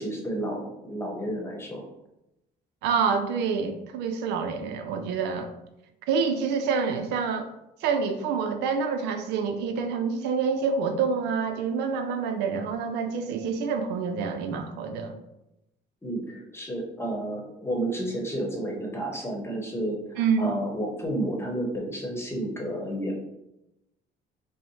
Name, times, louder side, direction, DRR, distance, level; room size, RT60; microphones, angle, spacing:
voice 1, 0.0-1.9 16.0-23.2, right 1 dB, 15° left, 0 dB, 0.9 m, -31 dB
voice 2, 2.8-5.5 6.1-7.5 7.8-15.2 20.2-20.5, right 5 dB, 85° right, 7 dB, 0.5 m, -27 dB
5.2 x 2.1 x 3.1 m, 0.89 s
cardioid pair, 110°, 17 cm